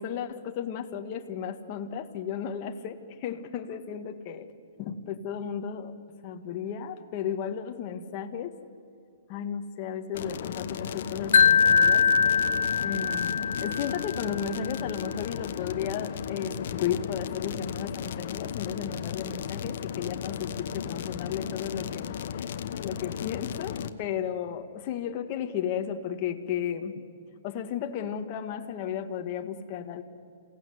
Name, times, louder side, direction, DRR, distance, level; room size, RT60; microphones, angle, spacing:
voice 1, 0.0-4.5 4.8-6.0 6.2-8.6 9.3-12.1 12.8-22.2 22.8-27.0 27.4-30.0, left 8 dB, 35° left, 6 dB, 1.7 m, -34 dB
sound 1, 10.1-23.9, left 8 dB, 60° left, 1.1 m, -35 dB
Wind chime, 11.3-14.4, left 6 dB, 80° left, 0.9 m, -22 dB
28.5 x 17.5 x 8.0 m, 2.4 s
hypercardioid pair, 150°, 0 cm